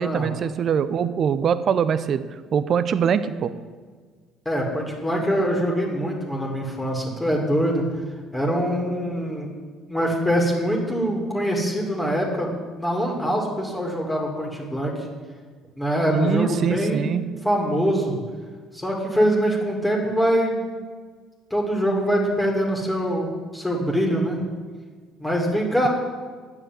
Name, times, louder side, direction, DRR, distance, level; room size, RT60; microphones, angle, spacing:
voice 1, 0.0-2.2 2.5-3.5 16.1-17.2, right 7 dB, 50° right, 13 dB, 0.6 m, -23 dB
voice 2, 4.5-7.8 8.3-9.5 9.9-15.1 15.8-17.2 17.4-18.2 18.7-20.7 21.5-24.4 25.2-25.9, equal, 10° left, -1 dB, 2.4 m, -23 dB
8.8 x 6.8 x 7.5 m, 1.5 s
hypercardioid pair, 55°, 0 cm